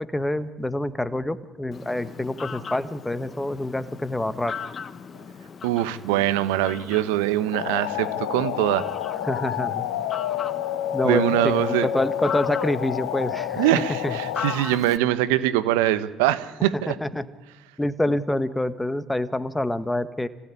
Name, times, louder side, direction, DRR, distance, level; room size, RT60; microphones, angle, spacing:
voice 1, 0.1-4.5 9.2-9.8 10.9-13.6 14.0-14.1 16.7-17.2 17.8-20.3, left 1 dB, 10° left, 13 dB, 1.6 m, -26 dB
Fowl, 1.7-15.0, left 6 dB, 45° left, 1.5 m, -38 dB
voice 2, 5.6-8.8 11.0-11.9 13.6-17.0, right 14 dB, 85° right, 14 dB, 1.1 m, -23 dB
sound 1, 7.5-14.6, left 11 dB, 85° left, 1.2 m, -29 dB
26.0 x 16.0 x 9.9 m, 1.2 s
hypercardioid pair, 65°, 0 cm